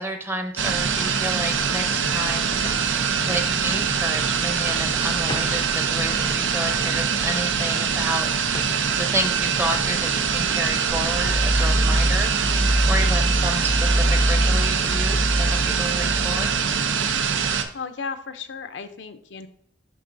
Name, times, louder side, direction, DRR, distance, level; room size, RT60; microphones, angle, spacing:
voice 1, 0.0-2.6 3.2-8.3 8.9-16.6, right 1 dB, 10° right, 5 dB, 0.7 m, -30 dB
sound 1, 0.6-17.6, right 6 dB, 85° right, 0.7 m, -24 dB
sound 2, 1.2-1.3 2.0-2.1 2.6-3.0 3.9-4.5 5.0-5.1 5.3-5.7 6.1-6.5 6.8-7.1 7.7-9.0 9.6-10.4 10.7-10.9 11.2-11.5 12.4-12.5 12.8-13.0 14.2-14.4, left 2 dB, 20° left, 0.5 m, -40 dB
sound 3, 10.9-16.8, equal, 50° right, 1.4 m, -23 dB
voice 2, 17.7-19.5, left 5 dB, 70° left, 9 dB, 0.6 m, -34 dB
11.0 x 3.7 x 2.6 m, 0.66 s
head